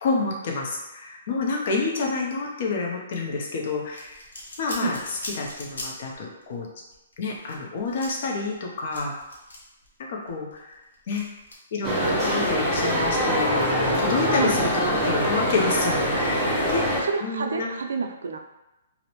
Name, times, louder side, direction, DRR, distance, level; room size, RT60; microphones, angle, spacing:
voice 1, 0.0-4.2 4.6-6.7 7.2-9.1 10.1-10.7 11.1-11.2 11.7-16.9 17.2-17.7, left 3 dB, 50° left, -1 dB, 0.6 m, -28 dB
sound 1, 3.8-6.2 6.4-6.5 6.9-9.9 10.3-11.5, left 1 dB, 90° left, 0.8 m, -40 dB
sound 2, 11.8-17.0, equal, ahead, 0.7 m, -23 dB
voice 2, 17.1-18.4, right 5 dB, 80° right, 4 dB, 0.3 m, -28 dB
2.5 x 2.0 x 2.9 m, 0.97 s
hypercardioid pair, 160°, 0 cm